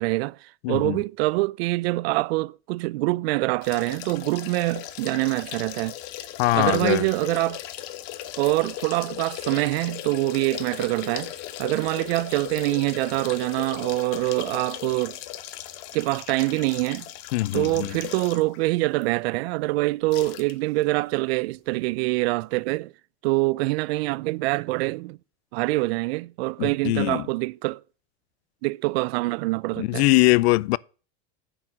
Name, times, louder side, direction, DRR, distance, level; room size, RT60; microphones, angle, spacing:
voice 1, 0.0-6.0 6.5-7.6 8.4-11.3 11.6-15.2 15.9-17.1 17.5-22.9 23.2-25.2 25.5-27.8 28.6-30.0, right 22 dB, 75° right, 0.5 m, -25 dB
voice 2, 0.6-1.0 6.4-7.1 17.3-18.0 26.6-27.3 29.8-30.8, left 20 dB, 85° left, 0.5 m, -22 dB
sound 1, 3.6-18.6 19.0-19.1 20.1-20.5 20.8-20.9, left 13 dB, 50° left, 1.0 m, -38 dB
9.8 x 4.8 x 7.3 m
supercardioid pair, 155°, 31 cm